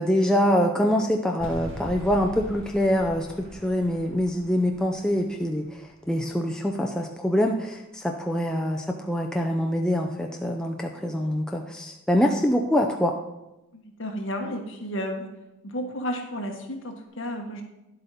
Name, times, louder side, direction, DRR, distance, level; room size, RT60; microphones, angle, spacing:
voice 1, 0.0-3.3 3.5-5.6 6.1-13.1, equal, 5° left, 1 dB, 0.5 m, -24 dB
sound 1, 1.4-6.6, equal, 60° right, 1.7 m, -42 dB
voice 2, 14.0-15.3 15.6-17.6, equal, 55° left, 2 dB, 1.4 m, -32 dB
10.5 x 7.8 x 4.1 m, 0.94 s
head